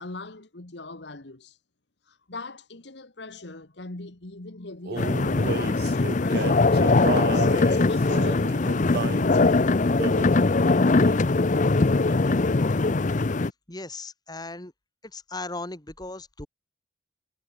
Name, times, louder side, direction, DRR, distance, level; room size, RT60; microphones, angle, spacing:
voice 1, 0.0-1.6 2.1-6.7 7.0-9.7, left 2 dB, 65° left, 1.8 m, -40 dB
Male singing, 4.8-9.3 10.0-10.4 11.0-11.3 11.6-12.5, right 5 dB, 60° right, 0.5 m, -33 dB
sound 1, 5.0-13.5, left 3 dB, 45° left, 0.7 m, -21 dB
voice 2, 13.7-14.7 15.0-16.5, left 2 dB, 20° left, 2.4 m, -37 dB
head